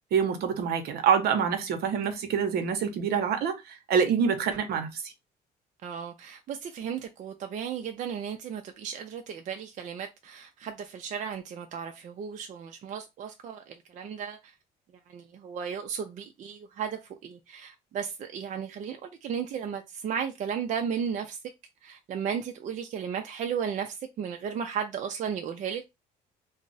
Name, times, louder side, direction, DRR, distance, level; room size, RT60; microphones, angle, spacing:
voice 1, 0.1-5.1, right 7 dB, 70° right, 0.7 m, -26 dB
voice 2, 5.8-14.5 15.1-21.4 21.8-25.8, right 7 dB, 50° right, 0.4 m, -35 dB
2.3 x 2.0 x 3.8 m
cardioid pair, 110°, 17 cm